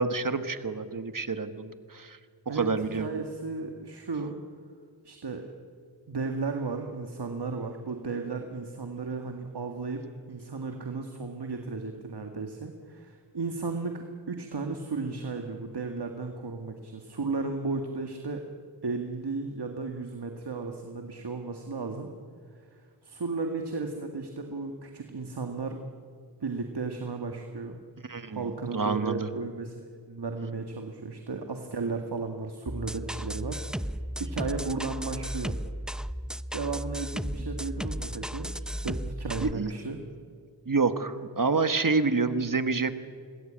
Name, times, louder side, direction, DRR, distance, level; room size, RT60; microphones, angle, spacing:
voice 1, 0.0-2.2 2.5-3.1 28.1-29.3 39.4-39.7 40.6-42.9, right 4 dB, 50° right, 10 dB, 1.5 m, -28 dB
voice 2, 2.5-4.4 5.0-5.5 6.1-10.0 10.3-18.4 18.8-22.1 22.7-25.8 26.4-27.8 28.3-33.9 34.2-35.6 36.5-38.5 38.8-40.0, right 4 dB, 65° right, 4 dB, 1.9 m, -34 dB
sound 1, 32.7-39.5, equal, ahead, 0.6 m, -34 dB
26.5 x 20.0 x 8.8 m, 2.1 s
wide cardioid pair, 60°, 43 cm